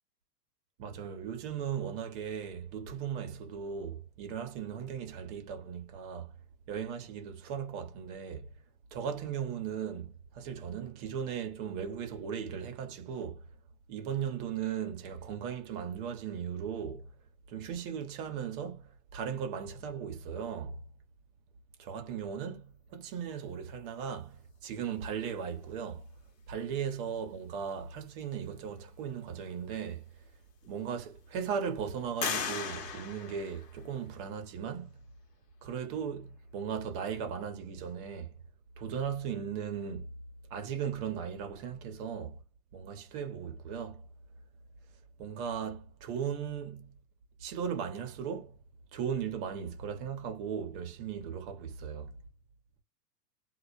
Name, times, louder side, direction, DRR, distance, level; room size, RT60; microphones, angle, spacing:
voice 1, 0.8-6.3 6.7-8.5 8.9-13.4 13.9-17.1 17.5-20.8 21.8-26.1 26.5-30.0 30.7-34.9 35.6-38.4 38.8-40.1 40.5-42.4 42.7-44.0 45.2-46.9 47.4-48.6 48.9-52.1, right 7 dB, 35° right, 0.9 m, -37 dB
sound 1, 29.9-30.0 30.6-31.3 32.2-34.2, left 6 dB, 80° left, 1.0 m, -37 dB
2.4 x 2.1 x 2.4 m
hypercardioid pair, 140°, 48 cm